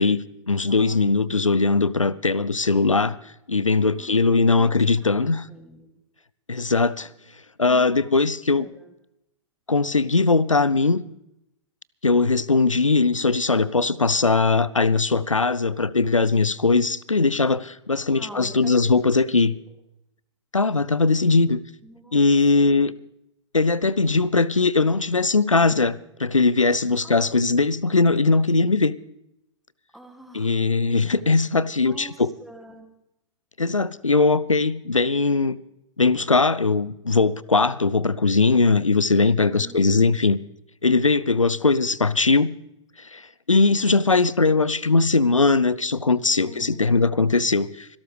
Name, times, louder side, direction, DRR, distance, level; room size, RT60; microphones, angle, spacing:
voice 1, 0.0-3.2 3.5-5.4 6.5-7.1 7.6-8.7 9.7-11.0 12.0-19.5 20.5-21.6 22.1-22.9 23.5-28.9 30.3-32.3 33.6-35.6 36.0-40.4 40.8-42.5 43.0-47.9, left 3 dB, 85° left, 0.6 m, -20 dB
voice 2, 0.7-1.3 3.9-4.2 4.5-6.0 7.6-8.1 8.6-8.9 18.1-18.9 19.2-19.3 21.8-22.9 27.0-27.2 29.9-30.7 31.8-32.9 39.5-39.8 46.4-47.1, right 1 dB, ahead, 2.4 m, -46 dB
26.0 x 12.5 x 3.3 m
figure-of-eight pair, 110°, 16 cm